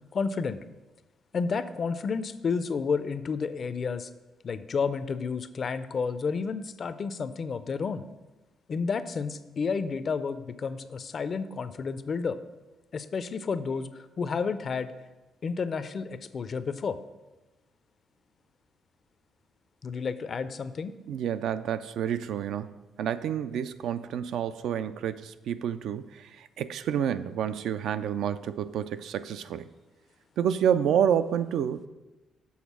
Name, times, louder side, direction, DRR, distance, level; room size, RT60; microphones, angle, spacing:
voice 1, 0.1-0.6 1.3-4.1 4.4-8.0 8.7-12.4 12.9-14.9 15.4-17.0 19.8-20.9, left 5 dB, 45° left, 12 dB, 0.4 m, -31 dB
voice 2, 21.1-29.7 30.4-31.9, right 9 dB, 75° right, 12 dB, 0.3 m, -29 dB
7.1 x 3.9 x 6.0 m, 1.1 s
cardioid pair, 90°, 0 cm